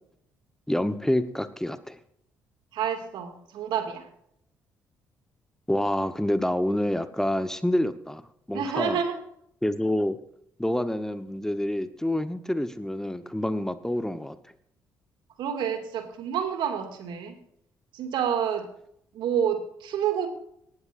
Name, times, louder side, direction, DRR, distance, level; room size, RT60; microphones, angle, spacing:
voice 1, 0.7-2.0 5.7-8.2 8.5-9.0 9.6-10.2 10.6-14.4, left 1 dB, 5° left, 11 dB, 1.1 m, -27 dB
voice 2, 2.7-4.1 8.5-9.2 15.4-17.4 17.9-18.7 19.1-20.3, right 8 dB, 70° right, 6 dB, 2.3 m, -28 dB
18.0 x 12.5 x 2.6 m, 0.71 s
hypercardioid pair, 50°, 8 cm